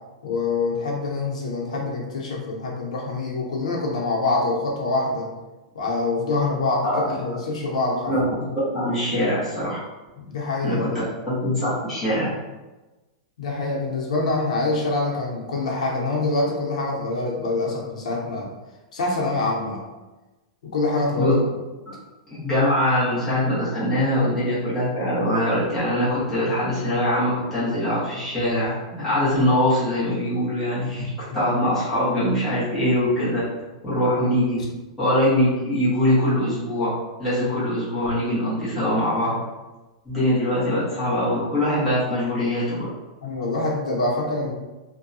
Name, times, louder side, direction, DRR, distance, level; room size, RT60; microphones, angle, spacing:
voice 1, 0.2-5.3 5.7-8.1 10.2-11.0 13.4-18.5 18.9-19.8 20.6-21.4 43.2-44.5, left 2 dB, 85° left, -2 dB, 0.7 m, -25 dB
voice 2, 6.8-7.4 8.1-8.2 8.7-9.8 10.6-10.9 11.4-12.3 21.2-21.3 22.3-33.4 33.8-34.6 35.0-36.9 37.2-39.3 40.0-42.9, left 1 dB, 5° left, -12 dB, 1.0 m, -22 dB
2.7 x 2.2 x 2.6 m, 1.1 s
supercardioid pair, 175°, 4 cm